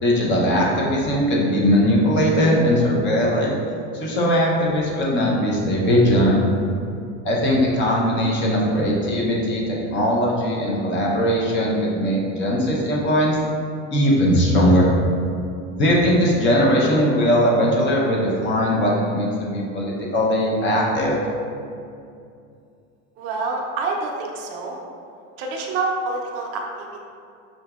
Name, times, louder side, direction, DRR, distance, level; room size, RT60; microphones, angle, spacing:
voice 1, 0.0-3.5 3.9-6.4 7.2-13.4 13.9-14.9 15.8-21.2, equal, 35° left, -3 dB, 0.7 m, -19 dB
voice 2, 23.2-24.8 25.4-27.0, right 3 dB, 45° right, 0 dB, 0.5 m, -27 dB
5.6 x 2.6 x 2.3 m, 2.5 s
cardioid pair, 145°, 33 cm